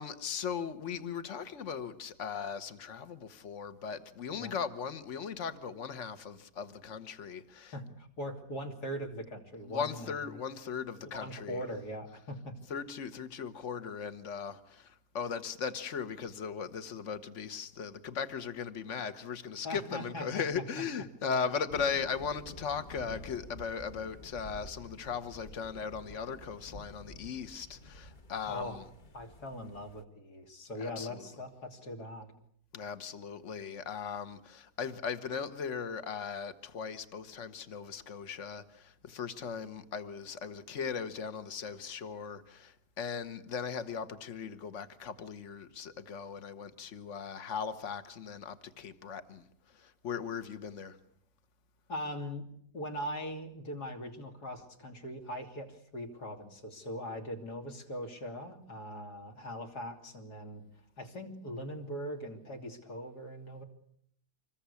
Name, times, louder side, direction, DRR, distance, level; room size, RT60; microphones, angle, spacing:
voice 1, 0.0-7.7 9.6-11.6 12.7-28.8 30.8-31.3 32.7-49.5 49.7-51.0, left 6 dB, 45° left, 1.7 m, -38 dB
voice 2, 7.7-10.1 11.1-12.5 19.6-20.4 28.5-28.8 29.1-32.3 51.9-52.5 52.7-60.7 61.0-63.6, equal, 70° left, 3.6 m, -41 dB
sound 1, 21.7-30.0, left 1 dB, 30° left, 1.2 m, -50 dB
26.0 x 21.0 x 8.4 m
omnidirectional pair, 1.8 m